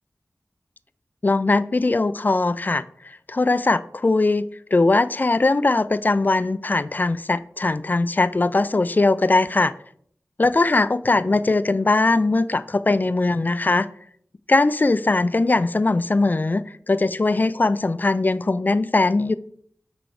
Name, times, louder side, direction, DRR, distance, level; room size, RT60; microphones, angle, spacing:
voice 1, 1.2-4.4 4.7-9.7 10.4-13.9 14.5-19.3, left 3 dB, 35° left, 0.3 m, -20 dB
6.2 x 4.5 x 4.9 m
wide cardioid pair, 75°, 5 cm